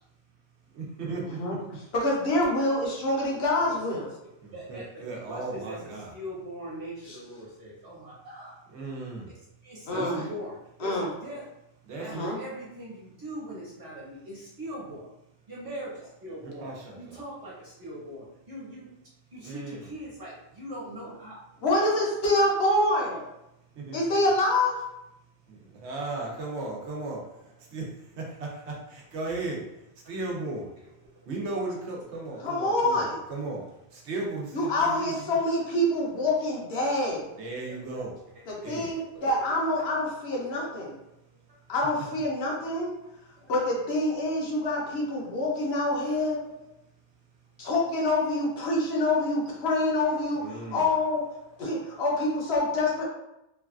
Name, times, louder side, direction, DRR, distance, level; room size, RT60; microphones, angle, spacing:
voice 1, 0.7-1.6 4.4-6.1 8.7-9.3 9.9-10.3 11.8-12.3 16.4-17.2 19.4-19.8 23.8-24.0 25.5-27.2 27.6-30.7 31.3-33.0 33.3-35.4 37.3-38.1 38.6-39.0 50.4-50.8, right 3 dB, 85° right, -1 dB, 1.0 m, -36 dB
voice 2, 1.9-4.1 9.9-10.2 10.8-11.1 12.1-12.4 21.6-23.2 23.9-24.8 32.4-33.2 34.5-37.2 38.5-41.0 41.7-42.9 43.5-46.4 47.6-51.3 51.6-53.0, left 1 dB, 70° left, -2 dB, 1.0 m, -26 dB
voice 3, 4.5-5.8 6.1-8.6 9.6-11.4 12.0-15.1 15.5-18.9 19.3-21.4 23.0-23.2 30.1-30.2 31.1-31.3 37.7-37.8 38.3-38.4 38.9-39.3 44.5-44.6 46.3-46.4, equal, 55° right, -7 dB, 1.3 m, -41 dB
3.1 x 2.3 x 2.3 m, 0.86 s
omnidirectional pair, 1.1 m